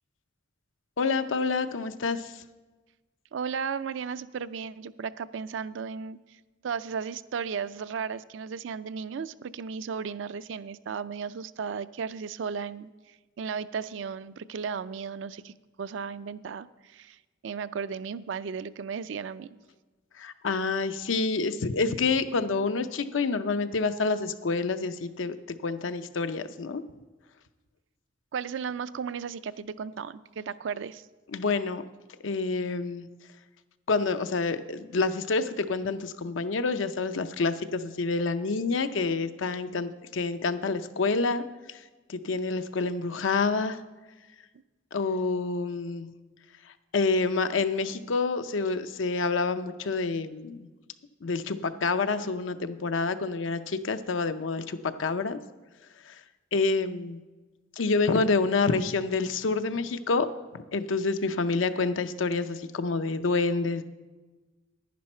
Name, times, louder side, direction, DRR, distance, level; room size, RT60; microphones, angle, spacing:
voice 1, 1.0-2.3 20.2-25.3 25.6-26.8 31.3-31.8 32.2-33.1 33.9-41.4 42.1-43.8 44.9-46.1 46.9-50.6 51.2-55.4 56.5-57.2 57.8-60.3 60.5-63.8, left 4 dB, 90° left, 10 dB, 0.6 m, -28 dB
voice 2, 3.3-6.2 6.6-15.5 15.8-19.6 28.3-31.0, right 6 dB, 70° right, 15 dB, 0.4 m, -35 dB
10.5 x 10.5 x 4.3 m, 1.2 s
head